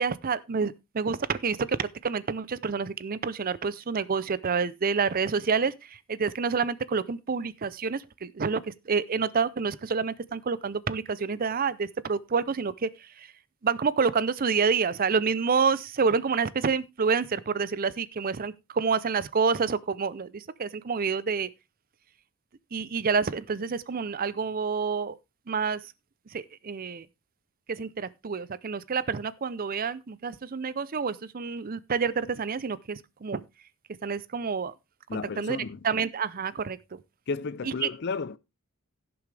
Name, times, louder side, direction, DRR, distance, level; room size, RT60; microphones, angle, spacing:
voice 1, 0.0-13.3 13.6-21.5 22.7-25.2 25.5-25.9 26.3-27.1 27.7-33.4 34.0-34.7 35.1-37.0 37.6-37.9, right 5 dB, 45° right, 0.6 m, -28 dB
voice 2, 35.1-35.8 37.3-38.4, left 4 dB, 55° left, 0.5 m, -33 dB
16.5 x 7.0 x 3.3 m
head